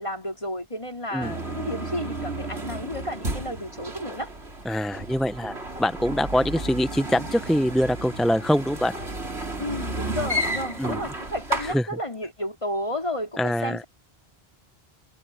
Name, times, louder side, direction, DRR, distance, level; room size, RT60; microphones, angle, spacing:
voice 1, 0.0-4.3 9.6-13.8, left 1 dB, 30° left, 3.7 m, -32 dB
sound 1, 1.2-11.7, right 1 dB, 80° right, 4.0 m, -32 dB
voice 2, 4.7-8.9 10.8-11.0 11.7-11.8 13.4-13.8, equal, ahead, 0.3 m, -24 dB
omnidirectional pair, 1.1 m